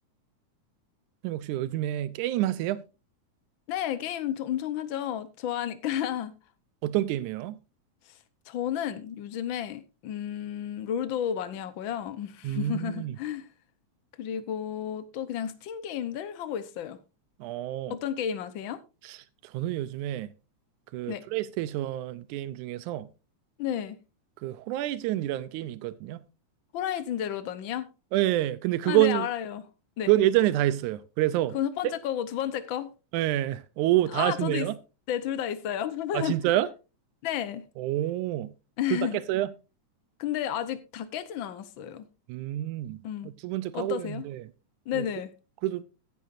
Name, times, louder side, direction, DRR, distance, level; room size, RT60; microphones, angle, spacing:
voice 1, 1.2-2.8 6.8-7.6 12.4-13.2 17.4-18.0 19.0-19.2 19.4-20.3 20.9-23.1 24.4-26.2 28.1-29.3 30.1-31.6 31.8-31.9 33.1-34.8 36.1-36.7 37.8-38.5 38.9-39.5 42.3-44.5 44.9-45.1 45.6-45.8, right 14 dB, 90° right, 2.1 m, -28 dB
voice 2, 3.7-6.3 8.0-8.2 8.5-13.5 14.2-17.0 17.9-18.8 21.1-21.2 23.6-24.0 26.7-27.9 28.8-29.6 30.0-30.1 31.5-32.9 34.1-34.7 35.1-36.4 37.2-37.7 38.8-39.2 40.2-42.1 43.0-43.3 43.7-44.3 44.9-45.3, left 10 dB, 85° left, 1.0 m, -32 dB
15.5 x 9.2 x 2.6 m
omnidirectional pair, 3.4 m